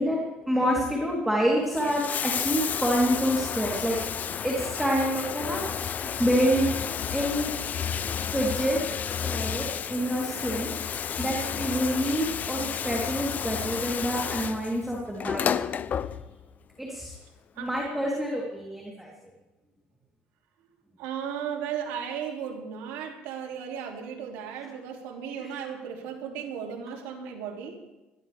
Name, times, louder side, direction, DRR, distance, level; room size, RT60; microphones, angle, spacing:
voice 1, 0.0-4.0 4.4-6.7 7.1-7.5 8.3-8.8 9.2-10.7 11.2-15.6 16.8-17.1 17.6-19.1 25.4-25.5, equal, 5° right, -3 dB, 3.5 m, -27 dB
Bathtub (filling or washing), 1.6-16.6 17.7-17.8, left 8 dB, 45° left, 0.6 m, -31 dB
voice 2, 21.0-27.8, right 8 dB, 90° right, 2 dB, 2.8 m, -35 dB
21.0 x 14.5 x 3.5 m, 1.0 s
cardioid pair, 105°, 4 cm